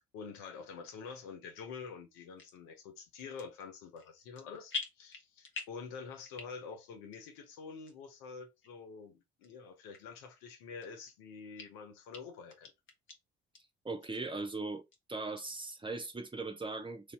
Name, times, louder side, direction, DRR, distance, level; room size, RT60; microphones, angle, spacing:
voice 1, 0.0-12.7, left 5 dB, 65° left, 1.1 m, -47 dB
sound 1, 2.4-2.6 3.2-3.7 4.0-4.4 4.7-5.9 6.2-6.7 7.1-7.2 7.9-8.0 8.6-8.7 9.4-9.5 9.9-10.0 10.5-11.2 11.6-11.7 12.1-12.2 12.5-13.2 13.5-13.6 14.0-14.1 14.5-15.0 15.4-15.5, left 4 dB, 40° left, 1.2 m, -43 dB
voice 2, 13.8-14.8 15.1-17.1, right 3 dB, 15° right, 0.7 m, -39 dB
3.3 x 2.8 x 4.4 m
figure-of-eight pair, 45°, 31 cm